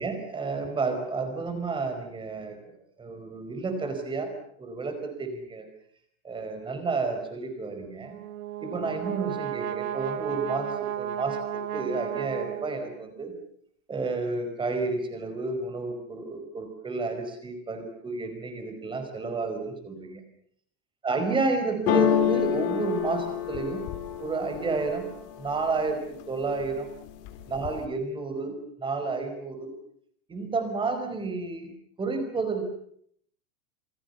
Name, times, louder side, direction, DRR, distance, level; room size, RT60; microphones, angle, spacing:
voice 1, 0.0-2.6 3.0-4.3 4.6-5.7 6.2-8.2 8.6-11.4 11.7-13.3 13.9-20.2 21.0-23.8 24.2-25.0 25.4-26.9 27.5-29.7 30.3-31.7 32.0-32.7, right 3 dB, 10° right, 7 dB, 5.1 m, -31 dB
Brass instrument, 8.0-13.1, right 11 dB, 65° right, 2.3 m, -34 dB
sound 1, 21.9-25.7 26.2-26.8 27.1-27.8, left 11 dB, 30° left, 3.5 m, -28 dB
28.0 x 24.5 x 6.9 m, 0.67 s
supercardioid pair, 170°, 45 cm